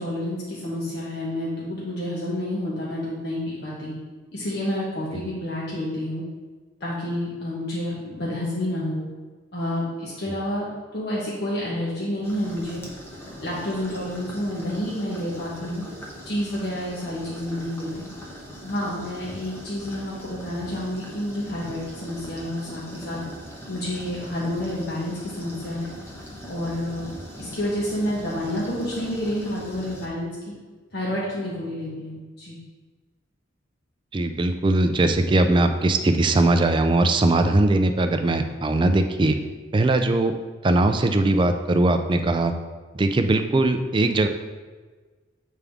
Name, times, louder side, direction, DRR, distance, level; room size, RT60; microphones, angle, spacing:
voice 1, 0.0-3.9 4.3-6.2 6.8-9.0 9.5-12.8 13.4-15.8 16.2-18.1 18.6-23.2 23.7-25.9 26.5-27.1 27.4-30.3 30.9-32.6, left 1 dB, 60° left, -6 dB, 1.1 m, -29 dB
sound 1, 12.2-30.1, equal, 15° left, 0.8 m, -41 dB
voice 2, 34.1-39.4 39.7-40.3 40.6-42.5 42.9-44.3, right 2 dB, 25° right, 7 dB, 0.3 m, -20 dB
8.2 x 3.6 x 3.5 m, 1.4 s
head